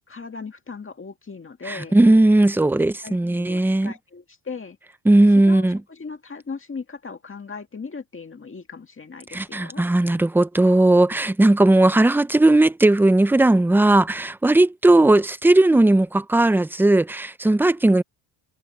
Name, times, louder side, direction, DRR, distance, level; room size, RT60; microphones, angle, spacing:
voice 1, 0.1-2.0 3.0-4.8 5.3-9.8, left 4 dB, 25° left, 1.9 m, -38 dB
voice 2, 1.7-3.9 5.1-5.8 9.3-18.0, right 2 dB, 5° right, 0.4 m, -17 dB
cardioid pair, 120°, 48 cm